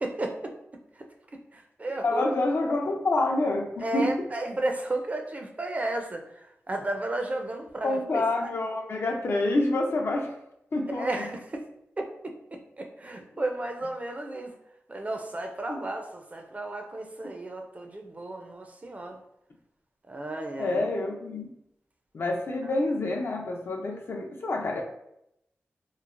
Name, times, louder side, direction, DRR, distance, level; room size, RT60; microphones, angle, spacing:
voice 1, 0.0-0.5 1.0-1.1 1.5-2.2 3.8-8.0 11.0-11.6 12.0-14.5 14.9-19.2 20.1-20.8 22.6-22.7, right 2 dB, 30° right, 3 dB, 0.4 m, -33 dB
voice 2, 2.0-4.2 7.8-10.4 10.7-11.3 15.7-15.8 20.6-21.5 22.1-24.8, left 2 dB, 60° left, 2 dB, 0.4 m, -27 dB
3.0 x 2.0 x 2.4 m, 0.80 s
cardioid pair, 60°, 5 cm